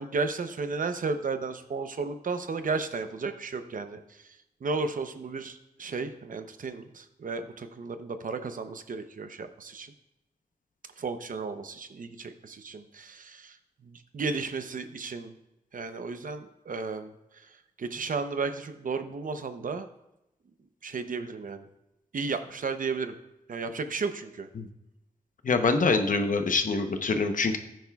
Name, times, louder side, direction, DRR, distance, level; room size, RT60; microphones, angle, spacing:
voice 1, 0.0-4.2 4.6-9.9 11.0-13.6 13.8-15.3 15.7-17.5 17.8-19.9 20.8-21.7 22.1-23.1 23.5-24.5, right 4 dB, 65° right, 9 dB, 0.7 m, -34 dB
voice 2, 25.4-27.6, left 4 dB, 65° left, 7 dB, 0.9 m, -25 dB
15.5 x 9.2 x 2.3 m, 0.89 s
wide cardioid pair, 110°, 15 cm